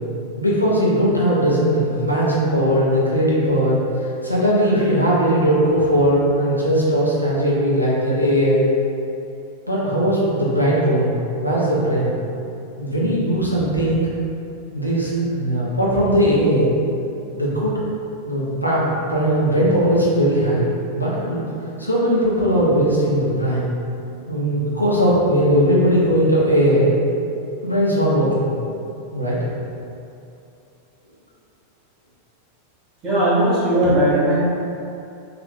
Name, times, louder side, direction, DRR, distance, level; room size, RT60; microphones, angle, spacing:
voice 1, 0.4-8.7 9.7-11.2 11.4-12.1 12.8-14.0 14.7-16.7 17.3-17.8 18.2-20.6 20.9-21.5 21.8-23.7 24.3-26.9 27.6-28.5 29.1-29.4, equal, 90° left, -7 dB, 0.6 m, -19 dB
voice 2, 33.0-34.4, right 1 dB, 25° right, -10 dB, 1.3 m, -17 dB
3.2 x 2.4 x 2.9 m, 2.7 s
figure-of-eight pair, 90°, 0 cm